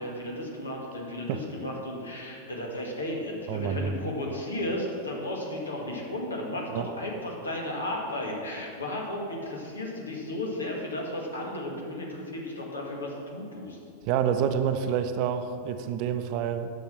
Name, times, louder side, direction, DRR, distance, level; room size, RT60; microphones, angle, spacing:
voice 1, 0.0-13.8, left 1 dB, 75° left, -1 dB, 1.9 m, -34 dB
voice 2, 3.5-3.9 6.7-6.9 14.1-16.7, right 8 dB, 45° right, 9 dB, 0.7 m, -28 dB
10.5 x 6.8 x 6.1 m, 2.5 s
figure-of-eight pair, 90°, 0 cm